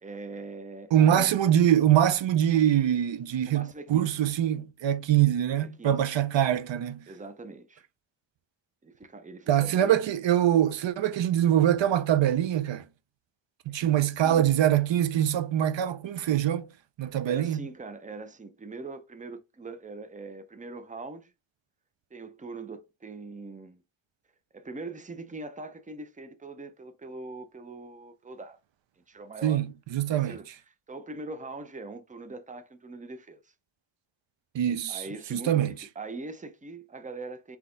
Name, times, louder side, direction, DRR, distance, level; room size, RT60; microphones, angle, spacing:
voice 1, 0.0-1.3 3.5-4.2 5.6-6.0 7.1-7.8 8.8-10.0 13.7-13.9 14.2-14.5 17.2-21.3 22.1-23.8 24.5-28.6 29.0-29.6 30.1-33.5 34.9-37.6, right 3 dB, 20° right, 0.4 m, -42 dB
voice 2, 0.9-7.0 9.5-12.8 13.7-16.7 17.0-17.6 29.4-29.7 29.9-30.4 34.5-35.0 35.3-35.7, right 10 dB, 65° right, 0.5 m, -24 dB
4.0 x 2.9 x 3.7 m
wide cardioid pair, 150°, 48 cm